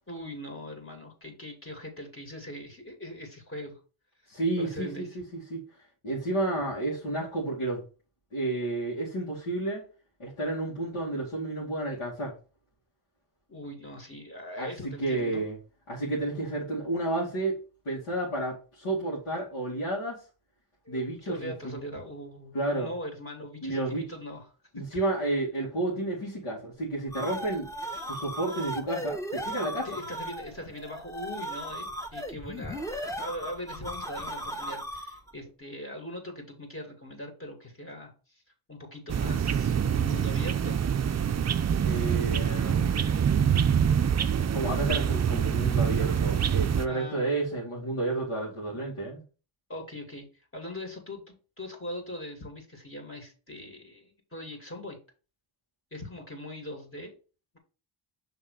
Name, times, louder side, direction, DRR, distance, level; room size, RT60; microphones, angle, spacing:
voice 1, 0.1-3.8 4.6-5.1 13.5-15.5 20.8-24.5 24.8-24.9 29.8-38.4 38.7-40.9 46.8-47.5 49.7-50.3 50.5-55.0 55.9-57.1, left 1 dB, 25° left, 2.5 m, -41 dB
voice 2, 4.3-5.6 6.0-7.8 8.3-9.8 10.2-12.3 14.6-15.6 15.9-17.6 17.9-20.2 20.9-21.8 22.5-22.9 23.6-24.0 24.7-27.7 28.1-29.9 41.8-43.3 44.5-49.2, right 2 dB, 75° left, 2.2 m, -31 dB
sound 1, 26.8-35.3, equal, 5° left, 1.1 m, -37 dB
sound 2, 39.1-46.9, right 8 dB, 35° right, 0.5 m, -25 dB
5.7 x 3.6 x 5.0 m
cardioid pair, 60°, 50 cm